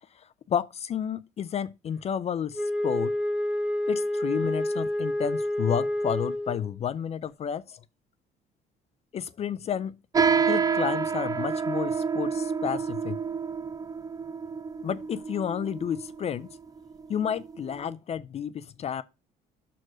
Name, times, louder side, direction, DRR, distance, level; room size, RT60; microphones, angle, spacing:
voice 1, 0.2-3.1 3.9-7.8 9.1-10.0 10.4-13.2 14.8-16.5 17.1-19.0, left 8 dB, 40° left, 0.4 m, -31 dB
Wind instrument woodwind instrument, 2.5-6.7, left 1 dB, 5° right, 1.3 m, -28 dB
sound 1, 10.1-17.9, right 6 dB, 20° right, 0.4 m, -29 dB
6.3 x 4.4 x 6.2 m
cardioid pair, 110°, 17 cm